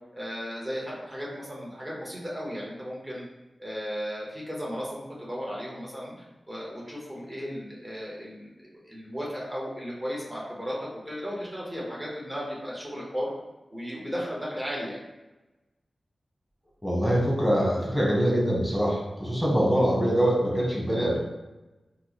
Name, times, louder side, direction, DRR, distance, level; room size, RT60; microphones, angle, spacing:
voice 1, 0.1-3.2 3.6-6.1 6.5-13.3 13.7-15.0, equal, 20° right, -5 dB, 1.1 m, -35 dB
voice 2, 16.8-21.2, equal, 5° left, -4 dB, 1.1 m, -24 dB
4.5 x 2.1 x 3.0 m, 1.1 s
wide cardioid pair, 125°, 0 cm